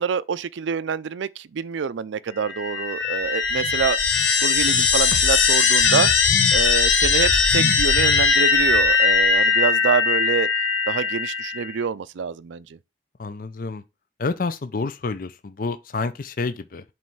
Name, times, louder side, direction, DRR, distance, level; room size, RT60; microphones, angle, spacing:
voice 1, 0.0-4.0 4.3-6.1 6.5-10.5 10.9-12.6, right 6 dB, 70° right, 0.4 m, -26 dB
sound 1, 2.4-11.7, left 5 dB, 85° left, 1.2 m, -19 dB
voice 2, 13.2-13.8 14.2-16.8, left 3 dB, 45° left, 0.5 m, -28 dB
7.6 x 3.2 x 5.5 m
head